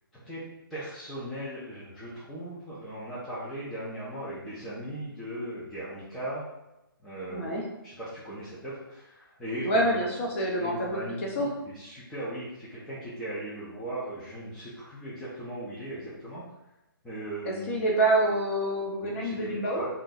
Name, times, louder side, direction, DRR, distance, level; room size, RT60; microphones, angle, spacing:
voice 1, 0.7-6.5 7.0-10.0 10.6-11.5 11.7-16.4 17.0-17.8 19.2-19.5 19.7-19.9, right 1 dB, ahead, -11 dB, 0.3 m, -38 dB
voice 2, 7.3-7.6 9.6-11.5 17.4-19.8, right 1 dB, 35° left, -1 dB, 0.7 m, -27 dB
2.5 x 2.2 x 3.8 m, 0.92 s
hypercardioid pair, 150°, 12 cm